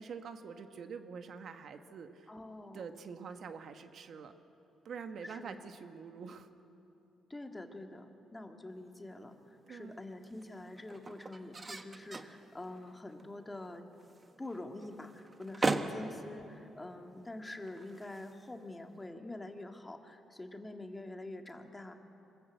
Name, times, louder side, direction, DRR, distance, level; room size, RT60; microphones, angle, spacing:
voice 1, 0.0-2.3 2.7-4.3 4.8-6.5 9.7-10.0, right 6 dB, 60° right, 8 dB, 1.2 m, -46 dB
voice 2, 2.3-2.9 5.2-5.6 7.3-13.8 14.4-21.9, left 2 dB, 15° left, 4 dB, 1.8 m, -46 dB
sound 1, 8.7-19.1, right 3 dB, 30° right, 1.2 m, -41 dB
25.0 x 14.0 x 8.1 m, 2.9 s
cardioid pair, 90°, 0 cm